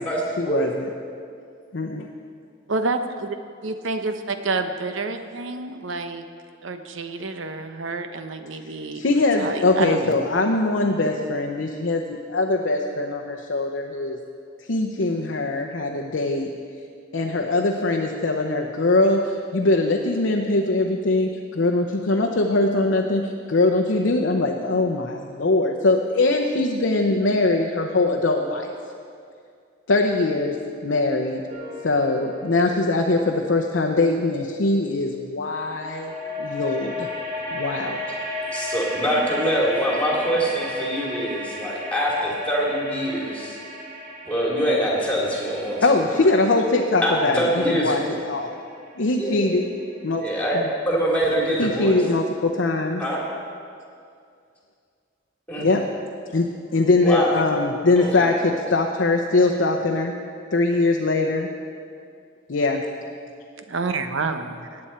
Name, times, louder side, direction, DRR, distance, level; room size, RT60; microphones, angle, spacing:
voice 1, 0.4-0.9 1.7-2.1 8.9-14.2 14.7-16.5 17.1-28.7 29.9-30.6 30.8-31.4 31.8-36.1 36.4-37.1 37.5-38.0 45.8-48.6 49.0-49.6 50.0-50.2 50.5-50.7 51.6-53.0 55.6-55.8 56.3-60.1 60.5-61.5 62.5-62.8, left 2 dB, 65° left, 2 dB, 0.7 m, -22 dB
voice 2, 2.7-3.4 3.6-6.2 6.6-9.0 9.4-10.1 63.7-64.8, right 3 dB, 70° right, 8 dB, 0.8 m, -28 dB
sound 1, 31.5-34.8 35.5-50.4, left 1 dB, 40° right, 2.6 m, -35 dB
voice 3, 38.5-43.6 44.2-45.8 47.0-48.0 49.2-49.5 50.2-50.6 50.9-52.0 53.0-53.2 55.5-55.7 57.0-57.3 58.0-58.3, equal, 5° left, -4 dB, 2.6 m, -24 dB
18.5 x 8.7 x 4.4 m, 2.3 s
head